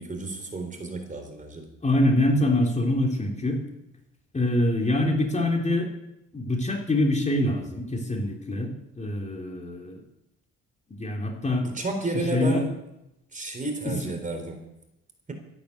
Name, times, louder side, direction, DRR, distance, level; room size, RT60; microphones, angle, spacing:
voice 1, 0.0-1.6 11.6-12.7 13.3-14.6, right 2 dB, 25° right, 4 dB, 3.9 m, -31 dB
voice 2, 1.8-3.6 4.3-5.9 6.3-10.0 11.0-11.7 12.1-12.7 13.8-14.0, left 1 dB, 25° left, 2 dB, 3.3 m, -25 dB
13.5 x 11.0 x 8.2 m, 0.87 s
cardioid pair, 90°, 30 cm